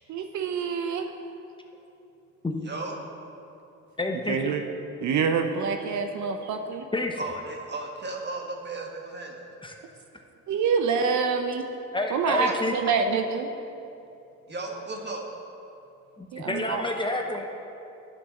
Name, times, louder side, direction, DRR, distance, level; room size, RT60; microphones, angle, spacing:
voice 1, 0.1-1.1 4.3-4.6 5.0-6.9 10.5-11.7 12.1-13.5 16.3-16.8, right 5 dB, 70° right, 6 dB, 0.7 m, -26 dB
voice 2, 2.6-3.0 7.2-9.4 12.4-12.5 14.5-15.2, right 2 dB, 35° right, 1 dB, 1.7 m, -35 dB
voice 3, 4.0-4.6 6.9-7.2 9.6-9.8 11.9-12.9 16.2-17.5, left 2 dB, 15° left, 2 dB, 0.9 m, -29 dB
10.0 x 6.0 x 7.0 m, 2.8 s
cardioid pair, 90°, 30 cm